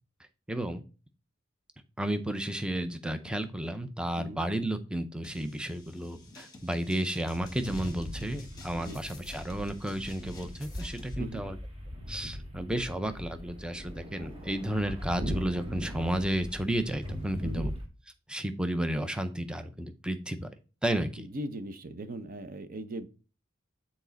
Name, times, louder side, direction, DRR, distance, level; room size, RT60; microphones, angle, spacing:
voice 1, 0.5-0.8 2.0-11.6 12.1-17.7 18.3-20.5 20.8-21.3, right 1 dB, 5° right, 8 dB, 0.5 m, -32 dB
sound 1, 5.2-11.1, left 2 dB, 20° left, 1.2 m, -51 dB
sound 2, 7.4-17.9, equal, 30° right, 1.1 m, -40 dB
voice 2, 21.2-23.1, right 1 dB, 45° right, 10 dB, 0.6 m, -39 dB
7.1 x 4.2 x 3.9 m, 0.34 s
head